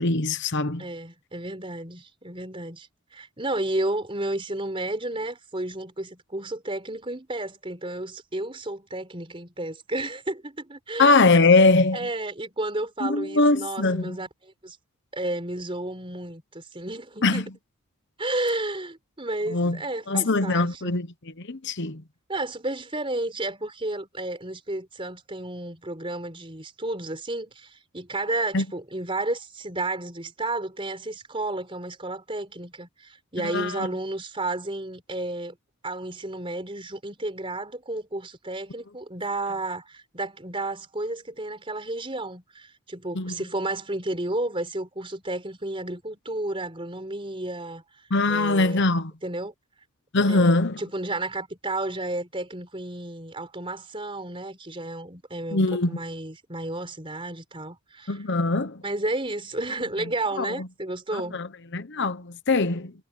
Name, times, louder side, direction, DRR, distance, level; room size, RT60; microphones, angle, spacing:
voice 1, 0.0-0.8 11.0-12.0 13.0-14.2 17.2-17.4 19.5-19.8 20.1-21.1 21.4-22.0 28.5-28.6 33.4-33.9 43.1-43.4 48.1-49.1 50.1-50.8 55.5-56.0 58.1-58.8 60.4-60.7 61.1-61.5 61.7-62.9, left 3 dB, 55° left, 1.0 m, -22 dB
voice 2, 0.8-11.1 11.9-14.8 15.1-17.5 18.2-20.9 22.3-35.6 35.8-47.8 48.3-48.9 49.2-49.5 50.3-58.2 58.8-61.4, right 2 dB, 25° right, 4.5 m, -32 dB
head